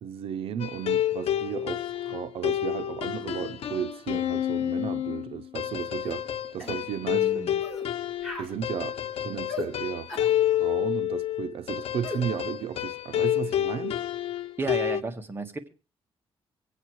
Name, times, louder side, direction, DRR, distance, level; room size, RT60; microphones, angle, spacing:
voice 1, 0.0-7.5 8.4-10.1 10.5-13.9, right 9 dB, 75° right, 0.6 m, -34 dB
sound 1, 0.6-15.0, left 11 dB, 85° left, 0.9 m, -29 dB
sound 2, 6.0-6.2 6.6-6.8 7.6-7.9 8.2-8.5 9.5-9.7 10.1-10.3 12.0-12.2, left 3 dB, ahead, 3.4 m, -36 dB
voice 2, 7.1-7.6 14.6-15.7, right 3 dB, 25° right, 1.6 m, -33 dB
23.0 x 8.4 x 4.7 m
cardioid pair, 130°, 10 cm